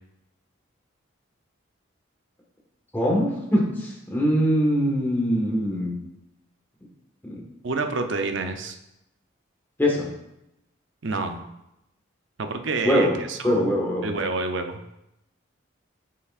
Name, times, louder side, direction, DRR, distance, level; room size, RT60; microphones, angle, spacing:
voice 1, 2.9-5.9 7.3-7.4 9.8-10.1 12.8-13.1 13.4-14.1, equal, 10° left, -3 dB, 1.4 m, -22 dB
voice 2, 7.6-8.7 11.0-11.4 12.4-13.7 14.0-14.8, right 3 dB, 70° right, 6 dB, 0.6 m, -28 dB
8.2 x 5.8 x 2.5 m, 0.87 s
head